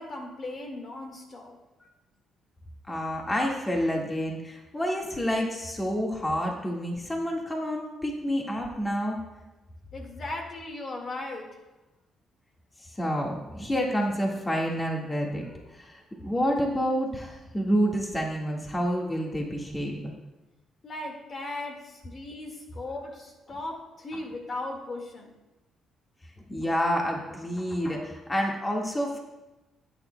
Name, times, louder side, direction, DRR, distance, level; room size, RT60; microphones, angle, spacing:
voice 1, 0.0-1.6 9.9-11.6 20.8-25.3, left 2 dB, 45° left, 2 dB, 1.8 m, -37 dB
voice 2, 2.9-9.2 12.9-20.1 26.5-29.2, equal, 20° left, -1 dB, 1.7 m, -28 dB
16.5 x 9.1 x 2.2 m, 1.0 s
cardioid pair, 90°, 0 cm